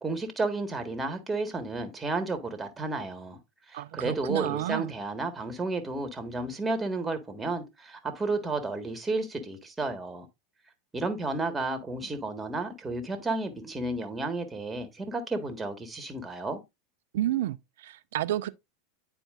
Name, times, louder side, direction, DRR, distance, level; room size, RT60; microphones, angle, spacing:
voice 1, 0.0-3.4 3.7-10.3 10.9-16.6, right 3 dB, 15° right, 1.4 m, -32 dB
voice 2, 3.7-4.9 17.1-18.5, right 13 dB, 70° right, 0.4 m, -30 dB
9.2 x 4.4 x 2.4 m
hypercardioid pair, 90°, 0 cm